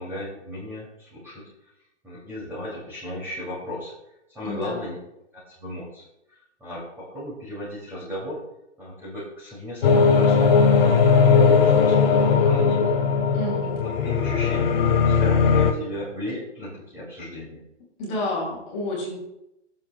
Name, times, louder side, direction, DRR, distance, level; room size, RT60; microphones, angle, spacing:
voice 1, 0.0-1.4 2.0-3.9 4.3-5.0 5.3-6.0 6.6-8.4 8.8-13.1 13.5-17.6, left 1 dB, 5° right, -8 dB, 2.6 m, -36 dB
voice 2, 4.4-4.8 13.3-13.8 18.0-19.2, left 1 dB, 20° left, -3 dB, 2.9 m, -30 dB
sound 1, 9.8-15.7, left 5 dB, 55° left, 1.3 m, -18 dB
21.5 x 7.5 x 2.3 m, 0.85 s
hypercardioid pair, 165°, 35 cm